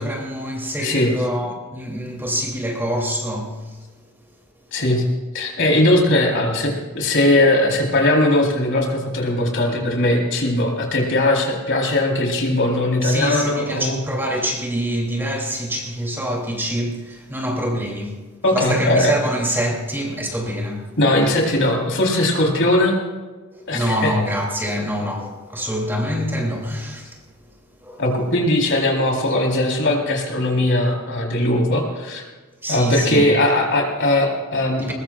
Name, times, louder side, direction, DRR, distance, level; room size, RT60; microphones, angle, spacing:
voice 1, 0.0-3.8 13.0-18.2 18.5-20.9 23.5-27.2 27.8-28.2 32.6-33.2 34.8-34.9, equal, 10° right, 3.1 m, -25 dB
voice 2, 0.8-1.1 4.7-5.0 5.3-14.0 18.4-19.1 21.0-23.0 23.7-24.1 28.0-32.2 32.7-34.9, left 1 dB, 55° left, 4.1 m, -19 dB
21.5 x 21.5 x 2.5 m
head